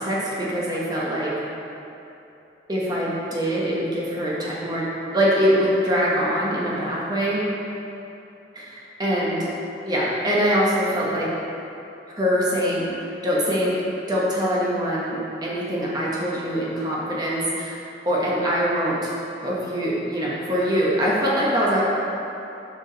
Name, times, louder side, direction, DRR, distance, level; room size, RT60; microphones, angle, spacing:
voice 1, 0.0-1.3 2.7-4.9 5.1-7.4 8.5-9.5 9.9-11.3 12.2-13.8 14.1-17.8 18.0-19.1 19.4-21.8, equal, 20° right, -6 dB, 1.1 m, -23 dB
6.4 x 4.8 x 4.0 m, 3.0 s
head